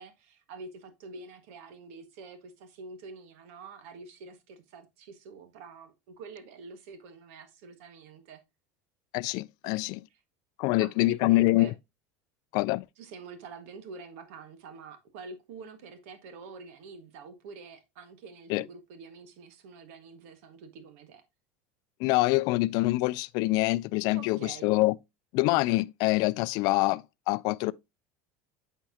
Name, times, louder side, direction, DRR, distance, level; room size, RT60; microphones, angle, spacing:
voice 1, 0.0-8.4 9.6-9.7 10.7-11.7 13.0-21.2 24.1-24.7, right 4 dB, 75° right, 1.4 m, -47 dB
voice 2, 9.1-10.0 10.6-11.7 12.5-12.8 18.5-18.6 22.0-24.9 25.3-27.7, left 20 dB, 60° left, 0.3 m, -25 dB
8.3 x 4.5 x 2.7 m
supercardioid pair, 120°, 7 cm